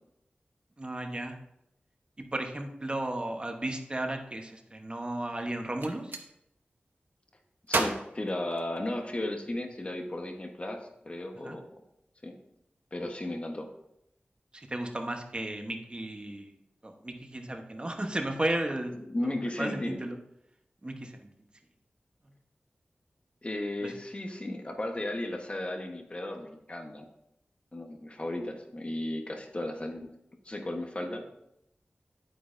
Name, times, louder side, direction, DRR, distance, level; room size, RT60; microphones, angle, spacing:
voice 1, 0.8-1.4 2.2-6.2 11.4-11.6 14.5-16.5 16.8-20.2 20.8-21.3 23.8-23.9, right 1 dB, 30° right, 4 dB, 1.0 m, -34 dB
Gunshot gunfire, 5.6-6.3 7.7-9.2, right 3 dB, 80° right, 0.9 m, -33 dB
voice 2, 7.7-11.6 12.2-12.3 12.9-13.7 19.0-20.0 23.4-27.1 27.7-30.1 30.4-31.2, left 1 dB, 35° left, 4 dB, 1.2 m, -35 dB
9.3 x 8.8 x 2.6 m, 0.80 s
wide cardioid pair, 80°, 3 cm